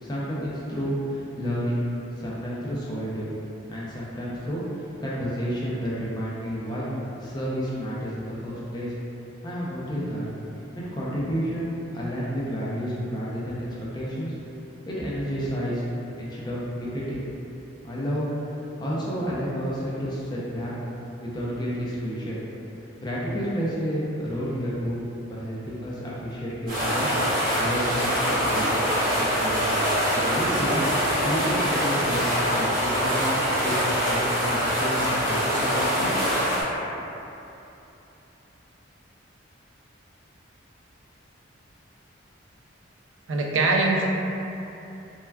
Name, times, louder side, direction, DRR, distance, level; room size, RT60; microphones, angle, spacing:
voice 1, 0.0-1.8 2.2-3.3 3.7-6.9 7.1-8.9 9.4-10.3 10.7-14.3 14.9-15.8 16.2-17.2 17.8-18.3 18.8-20.7 21.2-22.4 23.0-27.1 27.6-28.9 29.1-29.7 30.0-33.3 33.6-33.7 34.1-36.1, equal, 20° left, -7 dB, 0.4 m, -30 dB
sound 1, 26.7-36.6, equal, 50° right, 1.0 m, -24 dB
voice 2, 43.3-44.1, right 3 dB, 80° right, -1 dB, 0.4 m, -22 dB
3.4 x 2.2 x 2.2 m, 2.9 s
head